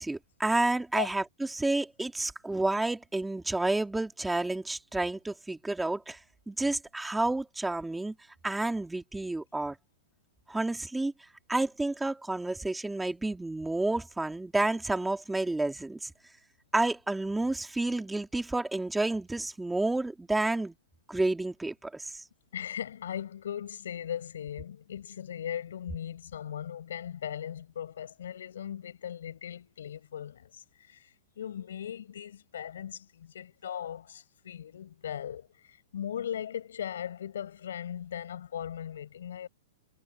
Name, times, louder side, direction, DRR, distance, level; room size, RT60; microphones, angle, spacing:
voice 1, 0.0-6.2 6.5-8.1 8.4-9.8 10.5-11.1 11.5-16.1 16.7-20.7 21.1-22.2, right 2 dB, 5° right, 2.5 m, -30 dB
voice 2, 22.5-39.5, left 9 dB, 80° left, 7.7 m, -38 dB
hypercardioid pair, 160°, 0 cm